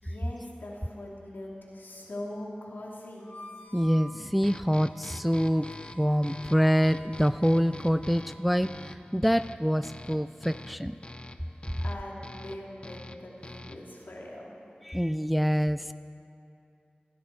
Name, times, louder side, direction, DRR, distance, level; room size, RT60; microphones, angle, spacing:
voice 1, 0.0-3.3 11.8-14.6, left 1 dB, 70° left, -3 dB, 3.0 m, -41 dB
Harmonica, 3.2-8.9, equal, 55° left, 2.5 m, -49 dB
voice 2, 3.7-5.7 5.9-11.0 14.8-15.9, equal, ahead, 12 dB, 0.4 m, -26 dB
sound 1, 4.4-14.0, left 1 dB, 30° left, 0.7 m, -45 dB
27.0 x 10.5 x 4.7 m, 2.6 s
wide cardioid pair, 45°, 3 cm